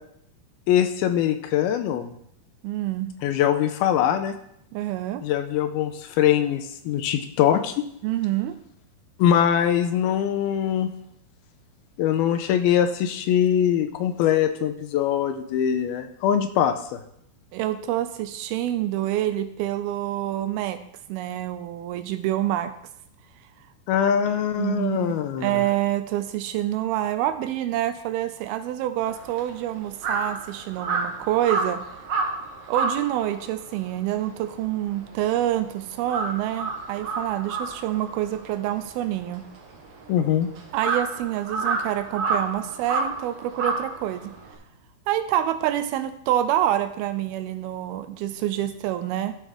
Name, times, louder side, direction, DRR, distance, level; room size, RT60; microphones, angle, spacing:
voice 1, 0.7-2.1 3.2-4.3 5.2-7.7 9.2-10.9 12.0-17.0 23.9-25.6 40.1-40.5, left 9 dB, 80° left, 8 dB, 2.5 m, -22 dB
voice 2, 2.6-3.1 4.7-5.3 8.0-8.5 17.5-20.8 21.1-22.7 24.6-25.1 25.4-31.8 32.7-39.4 40.7-44.3 45.1-49.4, right 12 dB, 80° right, 11 dB, 2.4 m, -27 dB
Crow, 29.1-35.6 35.9-44.5, right 4 dB, 55° right, 1.6 m, -30 dB
13.0 x 7.0 x 3.5 m, 0.73 s
omnidirectional pair, 4.6 m